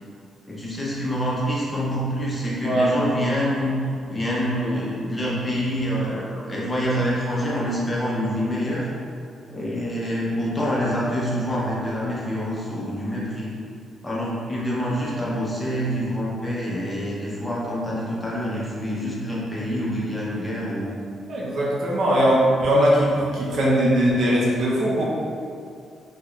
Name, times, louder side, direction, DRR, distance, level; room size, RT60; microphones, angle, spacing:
voice 1, 0.5-3.8 4.1-8.9 9.5-13.5 14.0-21.0, equal, 15° left, -6 dB, 0.6 m, -26 dB
voice 2, 21.3-25.0, equal, 50° right, -5 dB, 0.5 m, -20 dB
3.6 x 2.1 x 3.0 m, 2.4 s
wide cardioid pair, 170°, 0 cm